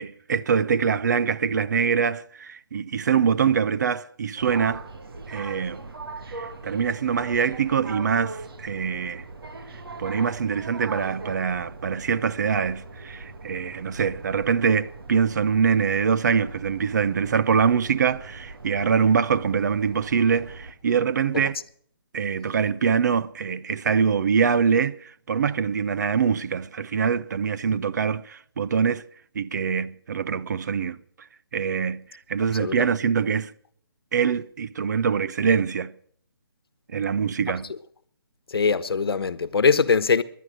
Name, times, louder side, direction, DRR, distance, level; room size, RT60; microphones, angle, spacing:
voice 1, 0.0-4.8 5.3-5.8 6.3-9.2 10.0-21.6 22.1-29.0 29.3-31.0 31.5-33.5 34.1-35.9 36.9-37.7, right 6 dB, 50° right, 0.6 m, -24 dB
sound 1, 4.4-20.7, right 3 dB, 75° right, 2.1 m, -40 dB
voice 2, 38.5-40.2, left 5 dB, 80° left, 1.1 m, -21 dB
19.0 x 11.0 x 6.4 m
hypercardioid pair, 165°, 13 cm